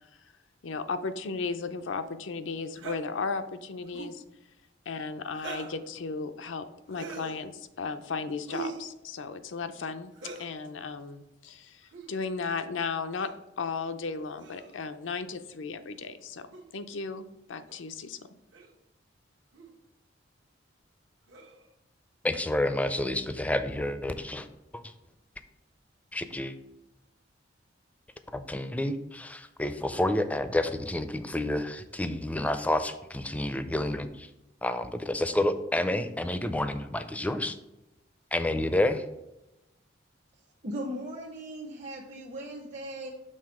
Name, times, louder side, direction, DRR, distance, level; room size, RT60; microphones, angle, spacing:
voice 1, 0.6-4.2 4.9-10.1 10.4-13.3 13.6-16.5 16.7-18.2, left 4 dB, 90° left, 9 dB, 0.5 m, -35 dB
sound 1, 2.7-3.0 3.8-4.2 5.3-5.8 6.9-7.4 8.5-8.9 10.1-10.5 11.8-12.1 13.2-13.4 14.4-14.8 16.5-16.6 17.7-17.8 18.5-18.7 19.5-19.7 21.3-21.7, right 5 dB, 80° right, 1.1 m, -42 dB
voice 2, 22.2-24.5 24.7-24.8 26.1-26.6 28.3-34.3 34.6-37.6 38.3-39.0, left 1 dB, 10° left, 10 dB, 0.4 m, -29 dB
voice 3, 40.6-43.1, equal, 40° right, -1 dB, 0.7 m, -38 dB
6.6 x 3.6 x 4.8 m, 0.94 s
head